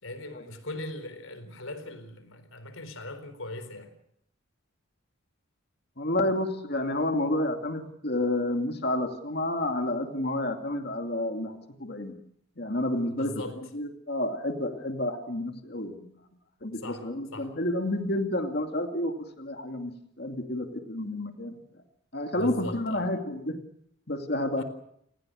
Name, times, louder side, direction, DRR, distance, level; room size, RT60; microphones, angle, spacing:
voice 1, 0.0-3.9 13.0-13.6 16.8-17.0 17.3-17.5 22.3-23.0 24.6-24.7, left 1 dB, 85° left, 4.2 m, -40 dB
voice 2, 6.0-12.1 12.6-16.1 16.6-21.6 22.1-23.6 24.1-24.6, left 1 dB, 50° left, 2.6 m, -30 dB
29.5 x 19.5 x 6.5 m
head